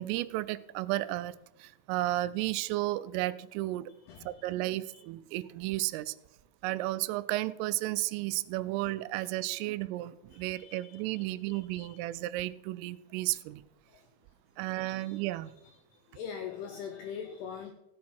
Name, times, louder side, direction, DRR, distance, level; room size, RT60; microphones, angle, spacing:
voice 1, 0.0-1.3 1.6-3.9 4.2-6.2 6.6-13.6 14.6-15.5, right 17 dB, 85° right, 16 dB, 3.1 m, -33 dB
voice 2, 10.4-11.0 11.4-12.0 14.9-15.2 16.1-17.7, left 7 dB, 85° left, 5 dB, 2.3 m, -42 dB
15.5 x 8.5 x 4.4 m, 0.91 s
omnidirectional pair, 5.7 m